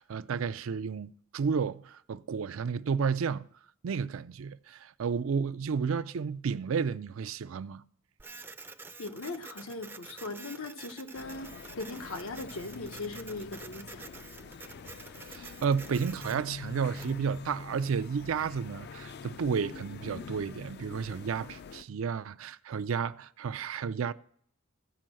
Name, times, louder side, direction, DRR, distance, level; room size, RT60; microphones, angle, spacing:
voice 1, 0.0-3.5 3.8-7.8 15.2-24.1, right 6 dB, 70° right, 0.4 m, -32 dB
Printer, 8.2-17.2, right 3 dB, 10° right, 0.4 m, -48 dB
voice 2, 9.0-14.1, left 3 dB, 90° left, 1.1 m, -39 dB
sound 1, 11.1-21.8, left 4 dB, 50° left, 0.4 m, -45 dB
15.0 x 5.4 x 7.5 m
head